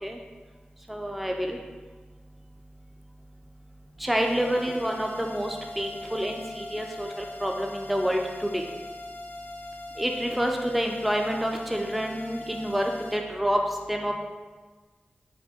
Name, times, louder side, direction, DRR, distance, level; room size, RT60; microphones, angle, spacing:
voice 1, 0.9-1.6 4.0-8.6 10.0-13.6 13.9-14.1, equal, 5° right, 2 dB, 0.4 m, -28 dB
sound 1, 4.2-13.2, left 2 dB, 60° left, 0.6 m, -41 dB
4.3 x 2.5 x 4.2 m, 1.4 s
wide cardioid pair, 75°, 4 cm